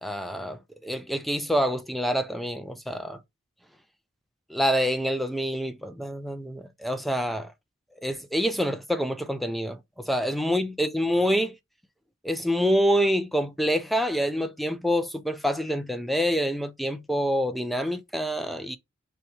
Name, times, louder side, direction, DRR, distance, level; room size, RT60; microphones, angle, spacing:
voice 1, 0.0-3.2 4.5-7.5 8.0-11.6 12.2-18.8, equal, ahead, 0.3 m, -26 dB
3.4 x 2.7 x 4.3 m
head